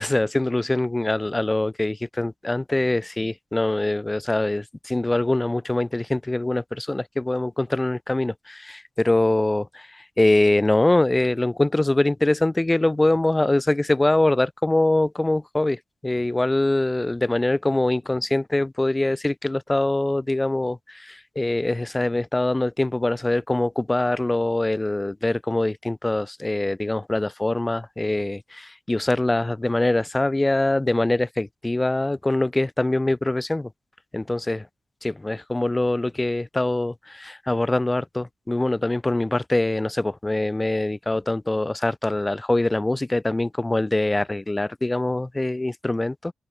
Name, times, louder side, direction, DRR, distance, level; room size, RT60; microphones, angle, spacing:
voice 1, 0.0-33.7 34.1-34.7 35.0-46.3, left 2 dB, 15° left, 1.4 m, -23 dB
cardioid pair, 105°, 0 cm